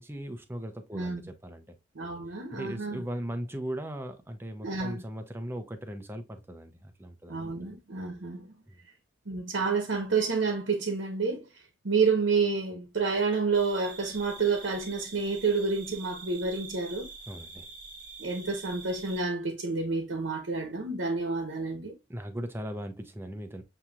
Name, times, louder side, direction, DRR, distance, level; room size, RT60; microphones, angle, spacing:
voice 1, 0.0-1.7 2.5-7.5 8.7-8.8 17.3-17.7 22.1-23.6, right 1 dB, 10° right, 0.6 m, -38 dB
voice 2, 1.9-3.0 4.6-5.0 7.3-8.5 9.3-17.1 18.2-21.9, right 4 dB, 80° right, 0.9 m, -29 dB
sound 1, 13.5-19.2, right 5 dB, 40° right, 0.9 m, -45 dB
7.1 x 2.8 x 2.3 m
head